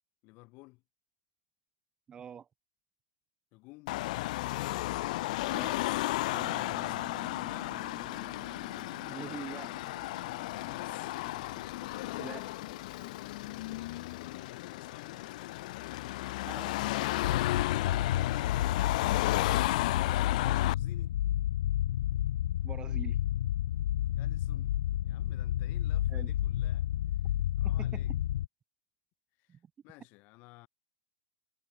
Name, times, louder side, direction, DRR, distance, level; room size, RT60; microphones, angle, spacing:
voice 1, 0.2-0.8 3.5-4.0 6.4-7.9 10.6-11.1 14.6-15.2 20.3-21.2 24.1-24.8 25.0-26.9 27.3-28.1 29.4-30.7, left 25 dB, 35° left, 5.3 m, -54 dB
voice 2, 2.1-2.5 5.5-5.8 9.0-9.7 12.2-12.5 16.4-16.7 22.6-23.2 26.1-26.3 27.6-28.2 29.5-29.6, right 8 dB, 15° right, 1.1 m, -44 dB
Car passing by / Traffic noise roadway noise / Engine, 3.9-20.7, left 18 dB, 50° left, 1.2 m, -34 dB
sound 1, 6.3-16.0, right 19 dB, 30° right, 6.5 m, -55 dB
sound 2, 17.2-28.5, left 12 dB, 70° left, 0.4 m, -30 dB
hypercardioid pair, 150°, 5 cm